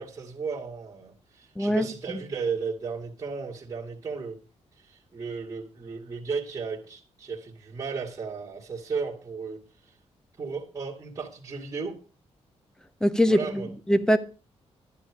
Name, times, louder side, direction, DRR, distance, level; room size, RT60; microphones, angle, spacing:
voice 1, 0.0-4.4 4.8-9.6 10.4-12.0 13.3-13.7, right 5 dB, 30° right, 2.3 m, -34 dB
voice 2, 1.6-1.9 13.0-14.2, equal, 5° left, 0.9 m, -22 dB
11.5 x 11.0 x 4.9 m
wide cardioid pair, 155°, 12 cm